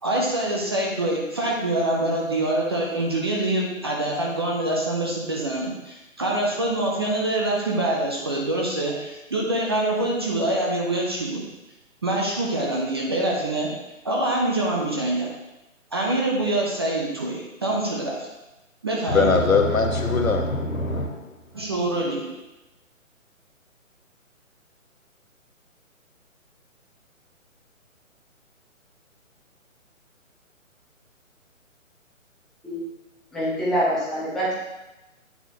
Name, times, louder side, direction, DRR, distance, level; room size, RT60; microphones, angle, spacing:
voice 1, 0.0-11.4 12.0-13.7 14.0-15.3 15.9-18.3 18.8-19.3 21.5-22.4, right 1 dB, 20° right, 0.6 m, -25 dB
voice 2, 19.1-21.3 21.5-21.6, left 3 dB, 80° left, 1.3 m, -21 dB
voice 3, 33.3-34.5, equal, ahead, 1.0 m, -25 dB
8.4 x 6.8 x 2.9 m
figure-of-eight pair, 140°, 41 cm